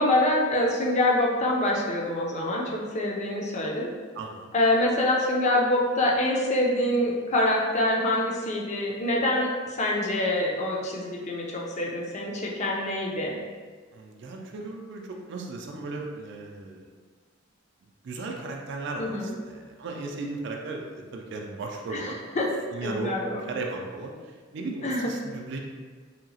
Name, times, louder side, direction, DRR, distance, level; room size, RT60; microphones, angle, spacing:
voice 1, 0.0-3.9 4.5-13.4 19.0-19.3 21.9-22.5 22.8-23.4 24.8-25.1, left 1 dB, 35° left, -2 dB, 0.5 m, -25 dB
voice 2, 4.2-4.5 13.9-16.8 18.0-22.2 22.7-23.1 23.4-24.1 24.5-25.6, right 3 dB, 60° right, 1 dB, 0.4 m, -36 dB
2.8 x 2.7 x 2.7 m, 1.5 s
head